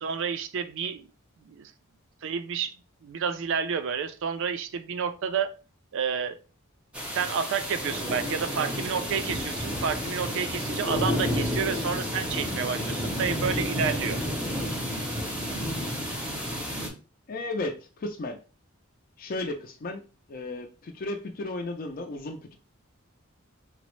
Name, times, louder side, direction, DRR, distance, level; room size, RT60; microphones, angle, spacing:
voice 1, 0.0-1.1 1.4-1.7 2.2-2.8 3.0-5.6 5.9-6.4 7.1-14.2, right 6 dB, 60° right, 0.4 m, -30 dB
sound 1, 6.9-16.9, equal, 5° right, 0.6 m, -31 dB
voice 2, 17.3-18.4 19.2-20.0 20.3-22.6, left 2 dB, 45° left, 0.4 m, -34 dB
4.0 x 2.0 x 3.0 m
head